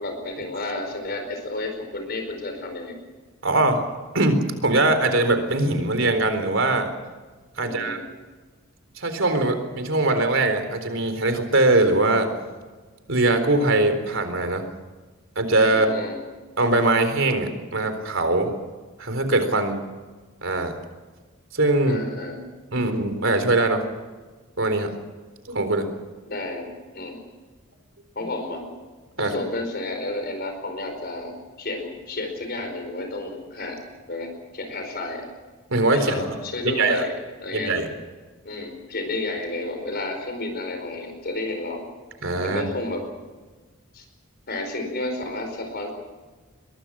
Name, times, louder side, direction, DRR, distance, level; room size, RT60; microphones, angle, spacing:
voice 1, 0.0-3.0 7.6-8.0 15.7-16.2 21.8-22.4 26.3-26.7 26.9-27.2 28.1-28.6 29.2-33.8 34.1-35.3 35.9-37.1 37.4-37.7 38.4-41.8 42.4-43.0 43.9-44.0 44.5-45.9, left 2 dB, 50° left, 5 dB, 4.8 m, -31 dB
voice 2, 3.4-3.8 4.1-6.9 7.6-8.0 9.0-12.3 13.1-14.6 15.4-15.9 16.6-18.5 19.0-19.8 20.4-20.8 21.5-22.0 22.7-23.8 24.6-24.9 25.5-25.9 29.2-29.4 35.7-36.3 36.6-37.0 37.5-37.9 42.2-42.6, right 2 dB, 60° right, 8 dB, 4.0 m, -21 dB
23.5 x 22.0 x 6.2 m, 1.3 s
head